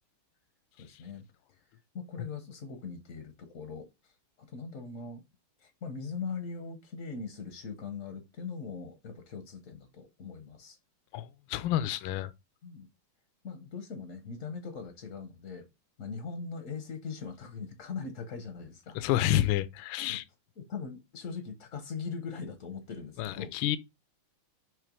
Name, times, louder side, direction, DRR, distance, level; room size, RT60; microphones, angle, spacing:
voice 1, 0.8-1.3 1.9-3.9 4.4-5.2 5.6-10.8 12.6-12.9 13.4-15.7 16.0-19.0 20.1-20.2 20.6-23.5, left 5 dB, 55° left, 0.9 m, -40 dB
voice 2, 11.1-12.3 18.9-20.2 23.2-23.8, left 13 dB, 75° left, 1.3 m, -29 dB
6.5 x 3.2 x 5.2 m
omnidirectional pair, 2.4 m